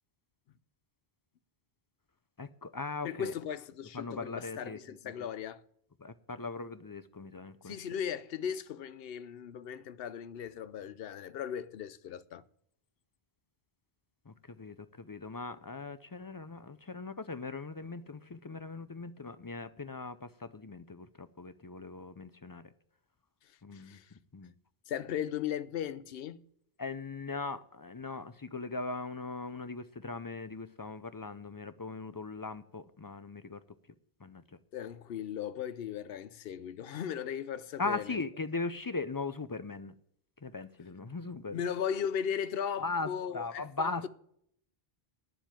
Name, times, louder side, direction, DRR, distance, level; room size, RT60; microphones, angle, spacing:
voice 1, 2.4-3.3 3.9-5.0 6.0-7.8 14.3-22.7 23.6-24.0 24.3-24.5 26.8-33.6 34.2-34.4 37.8-39.9 40.4-41.6 42.8-43.1 43.3-44.1, left 3 dB, 35° left, 0.3 m, -39 dB
voice 2, 3.0-5.6 7.6-12.4 23.4-24.1 24.9-26.5 34.7-38.2 41.5-44.1, left 8 dB, 70° left, 0.8 m, -37 dB
9.5 x 7.3 x 8.8 m
omnidirectional pair, 1.0 m